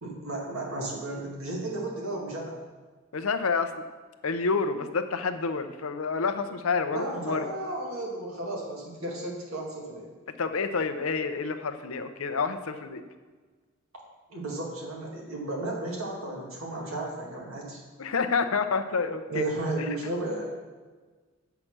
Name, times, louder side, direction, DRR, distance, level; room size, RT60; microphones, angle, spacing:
voice 1, 0.0-2.5 6.9-10.1 14.3-17.8 19.3-20.4, right 2 dB, 75° right, -2 dB, 2.1 m, -33 dB
voice 2, 3.1-3.7 4.2-7.5 10.4-13.0 18.0-19.5, left 4 dB, 80° left, 9 dB, 0.7 m, -28 dB
7.8 x 5.8 x 6.0 m, 1.4 s
head